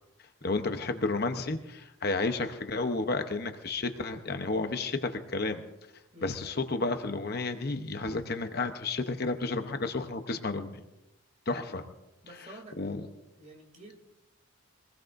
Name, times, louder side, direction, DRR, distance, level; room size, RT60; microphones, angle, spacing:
voice 1, 0.4-5.6 6.2-10.8 11.5-11.8 12.8-13.0, left 3 dB, 50° left, 7 dB, 0.9 m, -31 dB
voice 2, 12.2-12.8 13.1-14.0, right 1 dB, 35° right, 2 dB, 3.0 m, -50 dB
23.5 x 19.5 x 2.6 m, 0.96 s
head